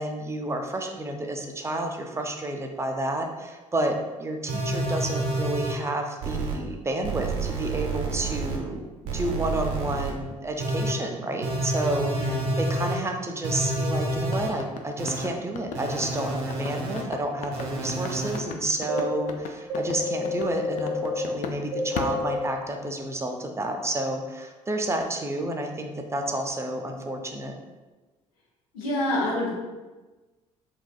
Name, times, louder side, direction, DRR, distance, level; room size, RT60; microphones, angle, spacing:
voice 1, 0.0-27.5, right 1 dB, 15° right, 3 dB, 0.4 m, -30 dB
sound 1, 4.5-5.7 6.2-6.5 7.0-8.6 9.0-10.1 10.6-10.9 11.4-12.9 13.4-14.5 15.0-15.2 15.7-17.0 17.5-18.4 18.9-19.2 19.7-21.2 21.7-22.4, right 1 dB, 70° right, 0.7 m, -29 dB
voice 2, 12.1-12.4 28.7-29.5, left 1 dB, 75° left, -4 dB, 0.7 m, -27 dB
sound 2, 14.3-21.6 22.0-23.0, left 5 dB, 45° left, 0.4 m, -36 dB
3.4 x 2.3 x 2.2 m, 1.2 s
figure-of-eight pair, 50°, 18 cm